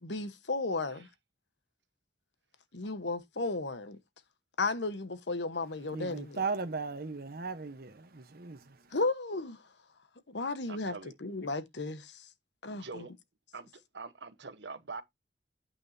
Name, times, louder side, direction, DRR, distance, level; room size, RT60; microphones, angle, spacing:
voice 1, 0.0-1.1 2.7-4.0 4.6-6.4 8.9-9.6 10.3-12.2 12.6-13.0, left 3 dB, 90° left, 1.2 m, -34 dB
voice 2, 5.9-8.7, right 4 dB, 60° right, 1.1 m, -37 dB
voice 3, 10.7-11.1 12.7-13.1 13.5-13.7 13.9-15.0, right 4 dB, 85° right, 1.1 m, -44 dB
8.9 x 8.7 x 2.8 m
head